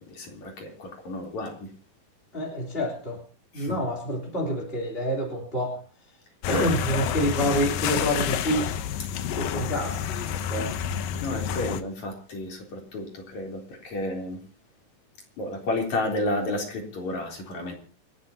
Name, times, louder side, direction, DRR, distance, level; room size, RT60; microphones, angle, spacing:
voice 1, 0.0-1.7 3.5-3.8 10.6-10.7 11.2-14.4 15.4-17.7, left 1 dB, 55° left, 1 dB, 5.0 m, -32 dB
voice 2, 2.3-3.2 3.5-5.8 6.5-8.7 9.3-10.7, equal, 15° left, -2 dB, 3.5 m, -28 dB
sound 1, 6.4-11.8, left 9 dB, 85° left, 2.7 m, -29 dB
28.5 x 12.0 x 2.9 m, 0.39 s
omnidirectional pair, 3.9 m